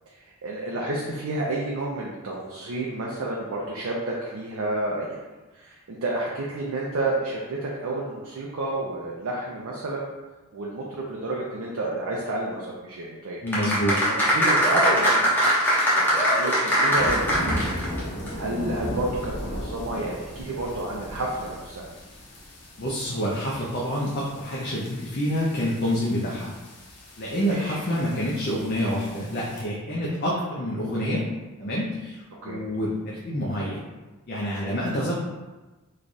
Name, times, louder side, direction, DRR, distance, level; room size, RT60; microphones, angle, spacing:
voice 1, 0.4-5.2 5.6-10.1 10.5-13.4 13.9-15.5 15.9-17.8 18.4-21.9 27.4-27.7 32.4-32.6, right 2 dB, 70° right, -3 dB, 0.5 m, -30 dB
voice 2, 13.4-13.9 22.8-26.5 27.2-31.3 31.6-33.8 34.3-35.2, equal, 45° left, -5 dB, 0.6 m, -27 dB
sound 1, 13.5-18.0 18.3-18.4, equal, 10° left, 0.8 m, -21 dB
sound 2, 16.9-29.6, equal, 80° left, 0.8 m, -37 dB
3.2 x 2.3 x 4.0 m, 1.2 s
head